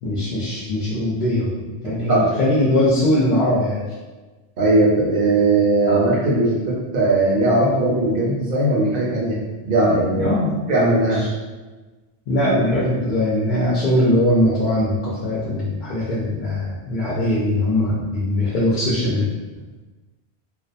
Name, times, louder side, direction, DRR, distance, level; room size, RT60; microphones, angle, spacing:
voice 1, 0.0-3.8 10.1-10.6 11.1-11.3 12.3-19.3, left 1 dB, 60° left, -6 dB, 0.6 m, -21 dB
voice 2, 1.8-2.3 4.6-9.4 9.6-10.3 10.7-11.2, right 2 dB, 60° right, -5 dB, 0.8 m, -18 dB
2.3 x 2.2 x 2.5 m, 1.2 s
omnidirectional pair, 1.1 m